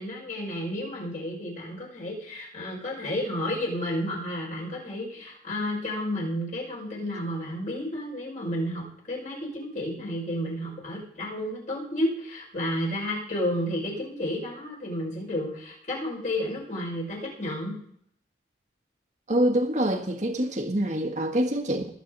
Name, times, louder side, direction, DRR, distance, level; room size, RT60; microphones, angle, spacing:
voice 1, 0.0-17.8, left 1 dB, 45° left, -2 dB, 6.2 m, -31 dB
voice 2, 19.3-21.9, right 1 dB, 40° right, 4 dB, 1.8 m, -25 dB
20.5 x 8.6 x 4.2 m, 0.63 s
head